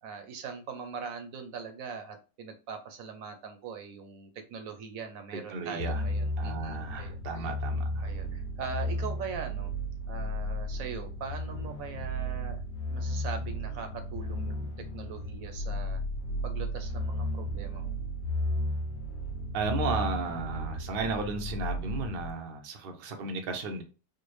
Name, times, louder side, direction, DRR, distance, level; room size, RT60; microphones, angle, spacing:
voice 1, 0.0-7.5 8.0-9.7 10.1-12.6 12.9-16.0 16.4-17.9, right 6 dB, 65° right, 6 dB, 0.9 m, -41 dB
voice 2, 5.5-6.0 6.4-8.1 19.5-23.8, right 4 dB, 90° right, 4 dB, 0.5 m, -34 dB
sound 1, 5.8-22.3, left 1 dB, 75° left, 1.2 m, -34 dB
4.6 x 2.1 x 3.1 m, 0.34 s
omnidirectional pair, 1.9 m